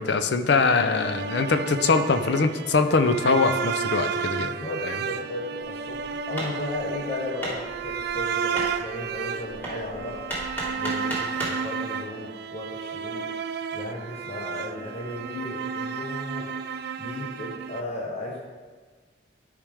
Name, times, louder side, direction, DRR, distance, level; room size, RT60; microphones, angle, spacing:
voice 1, 0.0-4.5, left 4 dB, 65° left, 9 dB, 0.6 m, -22 dB
sound 1, 0.7-17.8, right 6 dB, 60° right, 0.4 m, -32 dB
voice 2, 4.4-10.3 10.7-13.4 13.7-16.6 17.0-18.4, left 1 dB, 35° left, -3 dB, 1.0 m, -35 dB
Hammer, 5.8-11.7, right 1 dB, 10° left, 2.0 m, -36 dB
12.0 x 5.0 x 3.4 m, 1.4 s
head